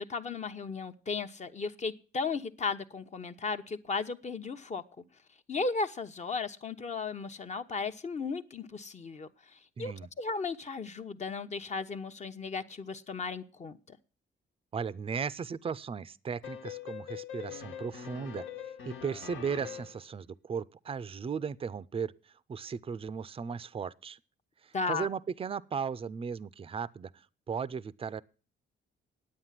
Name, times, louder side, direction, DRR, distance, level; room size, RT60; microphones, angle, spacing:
voice 1, 0.0-4.8 5.5-14.0 24.7-25.1, left 4 dB, 35° left, 0.9 m, -35 dB
voice 2, 9.8-10.1 14.7-18.4 18.9-24.2 24.6-28.2, right 6 dB, 30° right, 0.5 m, -36 dB
sound 1, 16.4-20.1, left 9 dB, 75° left, 1.4 m, -43 dB
9.7 x 8.6 x 7.4 m
cardioid pair, 90°, 20 cm